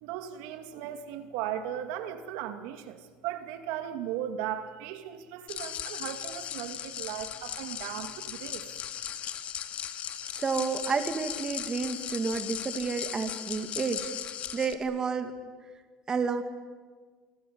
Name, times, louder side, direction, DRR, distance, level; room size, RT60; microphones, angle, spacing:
voice 1, 0.0-8.6, right 10 dB, 85° right, 8 dB, 2.5 m, -37 dB
sound 1, 5.5-14.7, left 10 dB, 45° left, 2.3 m, -37 dB
voice 2, 10.3-14.1 14.5-15.3 16.1-16.4, right 5 dB, 25° right, 7 dB, 2.4 m, -30 dB
27.5 x 23.0 x 8.8 m, 1.5 s
cardioid pair, 130°, 3 cm